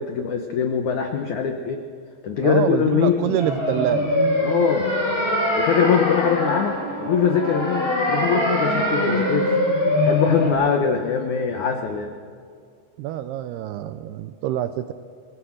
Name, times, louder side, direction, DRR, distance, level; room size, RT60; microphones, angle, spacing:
voice 1, 0.0-1.8 2.2-3.4 4.4-4.9 5.5-9.6 10.0-12.1, left 7 dB, 80° left, 5 dB, 1.7 m, -22 dB
voice 2, 2.4-4.2 13.0-14.9, right 12 dB, 80° right, 10 dB, 2.3 m, -26 dB
sound 1, 3.4-10.5, left 1 dB, 15° left, 4.6 m, -23 dB
26.5 x 19.5 x 6.4 m, 2.2 s
omnidirectional pair, 5.2 m